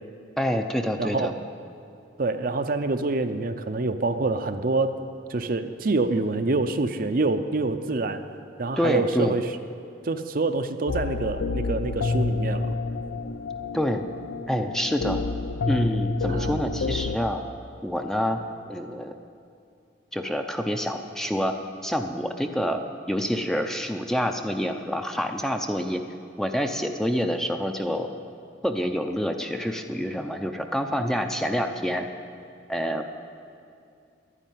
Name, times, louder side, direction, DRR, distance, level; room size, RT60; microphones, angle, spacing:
voice 1, 0.4-1.3 8.8-9.4 13.7-14.0 14.5-15.2 15.6-17.4 17.8-18.4 18.7-19.1 20.1-21.6 21.8-22.8 23.1-26.0 26.4-28.1 28.6-32.1 32.7-33.1, equal, ahead, 5 dB, 0.5 m, -27 dB
voice 2, 1.0-1.4 2.2-4.9 5.3-8.2 8.6-9.4 10.0-12.7 16.3-16.7, right 3 dB, 50° right, 8 dB, 0.6 m, -26 dB
sound 1, 10.9-17.2, left 3 dB, 75° left, 0.6 m, -28 dB
11.5 x 9.9 x 9.3 m, 2.5 s
head